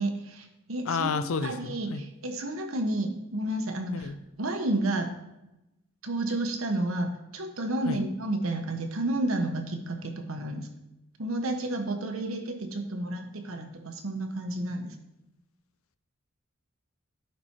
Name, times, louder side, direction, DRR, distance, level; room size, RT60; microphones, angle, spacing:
voice 1, 0.0-1.1 1.4-4.1 4.4-5.1 6.0-10.7 11.2-14.9, right 1 dB, 75° right, 5 dB, 1.1 m, -31 dB
voice 2, 0.9-2.0 3.9-4.2 7.8-8.0, left 5 dB, 85° left, 12 dB, 0.5 m, -31 dB
10.0 x 4.3 x 4.5 m, 0.91 s
head